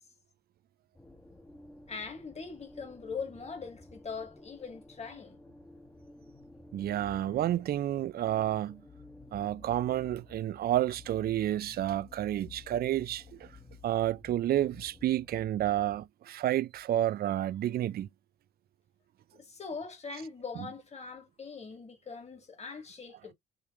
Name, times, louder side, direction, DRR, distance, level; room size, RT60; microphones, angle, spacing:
sound 1, 0.9-16.1, left 3 dB, 10° left, 1.0 m, -53 dB
voice 1, 1.9-5.4 19.3-23.3, left 5 dB, 35° left, 2.0 m, -41 dB
voice 2, 6.7-8.8 9.3-13.5 13.8-18.1, right 12 dB, 50° right, 0.4 m, -30 dB
5.1 x 3.0 x 3.1 m
cardioid pair, 90°, 20 cm